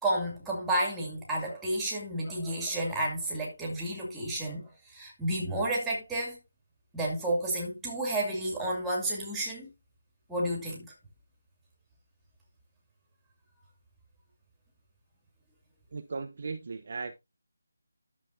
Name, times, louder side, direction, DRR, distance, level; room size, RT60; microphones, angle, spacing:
voice 1, 0.0-6.4 6.9-9.7 10.3-10.9, right 1 dB, 5° right, 2.5 m, -31 dB
voice 2, 15.9-17.2, right 4 dB, 40° right, 0.8 m, -37 dB
11.5 x 7.2 x 2.7 m
figure-of-eight pair, 175°, 0 cm